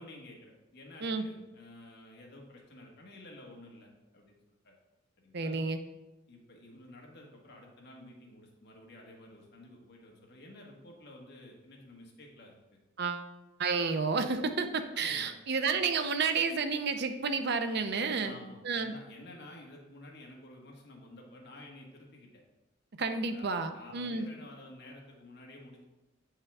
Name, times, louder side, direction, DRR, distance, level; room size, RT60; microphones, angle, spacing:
voice 1, 0.0-4.4 4.6-4.7 5.2-5.6 6.3-12.5 14.9-15.3 18.2-22.3 23.1-25.9, left 1 dB, 55° left, 0 dB, 1.5 m, -51 dB
voice 2, 5.3-5.8 13.0-13.3 13.6-18.4 18.6-18.9 23.0-24.3, right 4 dB, 55° right, 8 dB, 0.6 m, -31 dB
8.2 x 5.6 x 3.5 m, 1.0 s
head